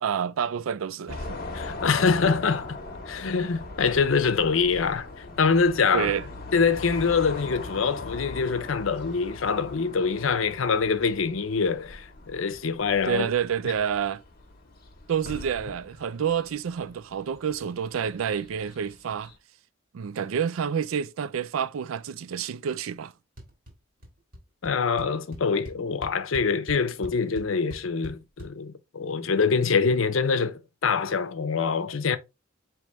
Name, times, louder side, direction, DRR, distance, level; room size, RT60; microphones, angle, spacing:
voice 1, 0.0-1.4 5.9-6.3 13.1-14.2 15.1-19.3 19.9-23.1 29.6-29.7, right 8 dB, 90° right, 0.4 m, -28 dB
sound 1, 1.1-19.4, left 2 dB, 45° left, 1.0 m, -41 dB
voice 2, 1.5-2.8 3.1-6.1 6.5-13.3 24.6-32.2, left 5 dB, 75° left, 0.6 m, -25 dB
sound 2, 23.4-23.7 24.0-24.4 24.6-24.7 25.0-28.5, equal, 45° right, 1.8 m, -41 dB
4.7 x 3.1 x 3.1 m
head